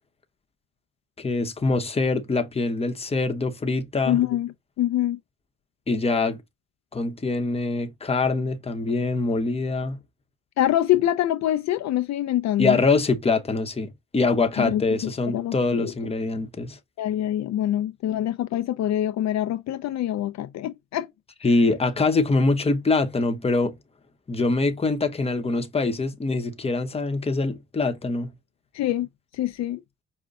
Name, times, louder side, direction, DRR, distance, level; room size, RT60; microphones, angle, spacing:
voice 1, 1.2-4.2 5.9-6.4 6.9-10.0 12.6-16.8 21.4-23.7 24.3-28.3, left 3 dB, 20° left, 0.8 m, -24 dB
voice 2, 4.1-5.2 10.6-12.8 14.6-14.8 15.3-15.9 17.0-21.1 28.7-29.1 29.3-29.8, left 12 dB, 65° left, 0.5 m, -25 dB
5.2 x 2.1 x 3.5 m
cardioid pair, 90°, 30 cm